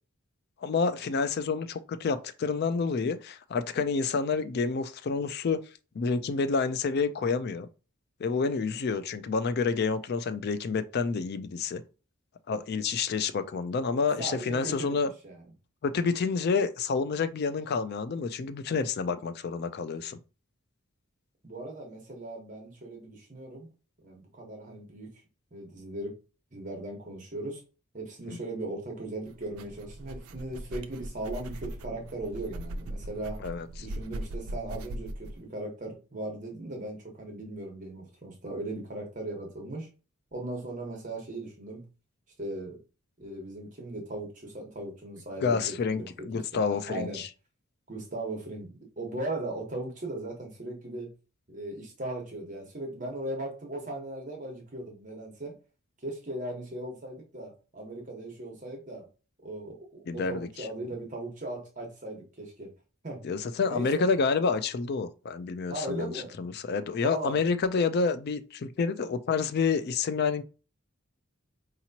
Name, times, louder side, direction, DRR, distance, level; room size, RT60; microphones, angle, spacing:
voice 1, 0.6-5.6 6.0-7.7 8.2-11.8 12.5-15.1 15.8-20.2 28.3-28.4 33.4-33.7 45.4-46.0 46.3-47.3 60.1-60.7 63.2-66.1 66.4-70.4, left 5 dB, 50° left, 0.4 m, -28 dB
voice 2, 14.2-14.9 15.2-15.4 21.4-23.7 24.0-25.1 25.5-26.1 26.5-27.6 27.9-33.4 33.8-39.9 40.3-41.9 42.4-42.8 43.2-46.1 46.3-47.2 47.9-48.7 49.0-51.1 51.5-55.6 56.0-59.0 59.4-62.7 63.0-63.2 63.6-64.1 65.7-66.4 67.0-67.4, right 1 dB, 35° right, 1.2 m, -38 dB
sound 1, 29.2-35.4, right 1 dB, 85° right, 0.5 m, -39 dB
4.8 x 2.9 x 2.8 m
head